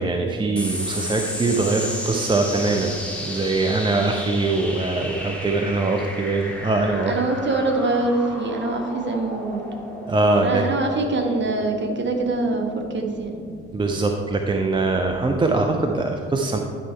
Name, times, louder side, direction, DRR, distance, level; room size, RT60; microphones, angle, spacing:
voice 1, 0.0-3.0 3.2-7.1 10.1-10.6 13.7-16.6, right 3 dB, 15° right, 3 dB, 0.5 m, -22 dB
sound 1, 0.6-15.4, equal, 5° left, 2.0 m, -34 dB
voice 2, 7.1-9.6 10.4-13.4, right 2 dB, 35° right, 2 dB, 1.3 m, -24 dB
10.0 x 4.7 x 4.5 m, 2.3 s
figure-of-eight pair, 45°, 33 cm